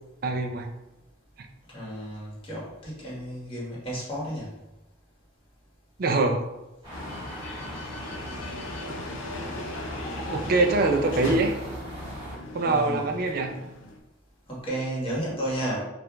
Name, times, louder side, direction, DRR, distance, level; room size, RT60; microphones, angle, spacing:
voice 1, 0.2-0.7 6.0-6.5 10.3-11.6 12.5-13.6, right 3 dB, 50° right, 4 dB, 0.4 m, -24 dB
voice 2, 1.7-4.6 12.6-13.1 14.5-15.8, right 1 dB, 25° left, -6 dB, 1.2 m, -32 dB
sound 1, 6.8-12.4, equal, 30° right, 1.4 m, -39 dB
sound 2, 6.9-14.0, left 1 dB, 90° left, 0.5 m, -37 dB
4.5 x 2.5 x 2.2 m, 0.99 s
head